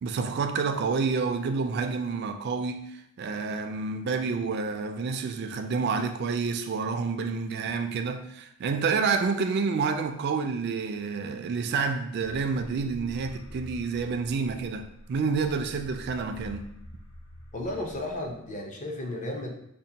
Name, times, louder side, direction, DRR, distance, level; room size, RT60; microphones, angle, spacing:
voice 1, 0.0-16.7, right 5 dB, 50° right, 0.3 m, -29 dB
sound 1, 12.1-18.7, equal, 65° left, 0.8 m, -46 dB
voice 2, 17.5-19.5, left 1 dB, 35° left, 0.6 m, -34 dB
5.2 x 2.2 x 2.7 m
head